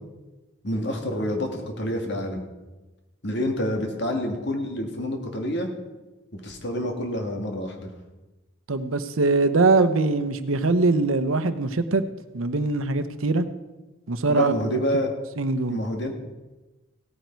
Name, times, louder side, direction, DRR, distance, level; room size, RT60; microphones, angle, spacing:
voice 1, 0.6-2.4 3.2-5.7 6.3-7.9 14.3-15.1 15.7-16.1, equal, 55° left, 3 dB, 2.0 m, -28 dB
voice 2, 8.7-12.0 12.3-13.4 14.1-14.8 15.4-15.8, right 3 dB, 90° right, 11 dB, 0.9 m, -22 dB
16.5 x 9.4 x 4.6 m, 1.1 s
head